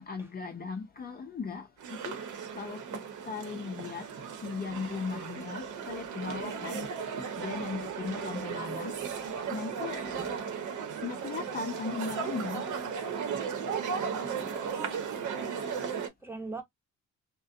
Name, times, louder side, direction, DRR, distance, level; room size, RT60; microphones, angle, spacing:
voice 1, 0.0-2.2 2.5-4.1 4.4-6.9 7.4-9.2 9.5-10.1 11.0-12.7, left 5 dB, 30° left, 0.5 m, -38 dB
sound 1, 1.8-16.1, right 6 dB, 80° right, 0.8 m, -36 dB
voice 2, 8.1-8.4 10.1-10.4 14.2-14.9 16.2-16.6, right 2 dB, 10° right, 0.8 m, -42 dB
2.5 x 2.1 x 2.3 m
cardioid pair, 90°, 30 cm